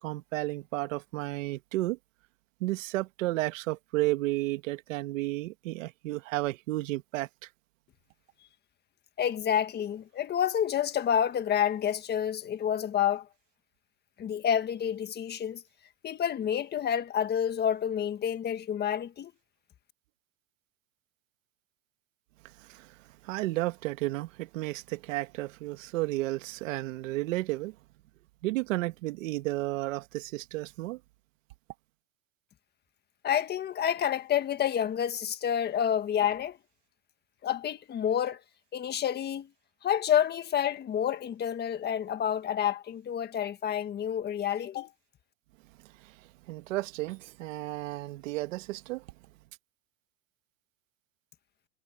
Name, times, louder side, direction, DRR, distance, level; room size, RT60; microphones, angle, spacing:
voice 1, 0.0-2.0 2.6-7.3 22.7-22.9 23.2-27.7 28.4-31.0 46.5-49.0, right 18 dB, 80° right, 1.7 m, -32 dB
voice 2, 9.2-13.3 14.2-15.6 16.0-19.3 33.2-36.6 37.4-38.4 38.7-39.5 39.8-44.9, left 9 dB, 25° left, 1.6 m, -29 dB
supercardioid pair, 145°, 38 cm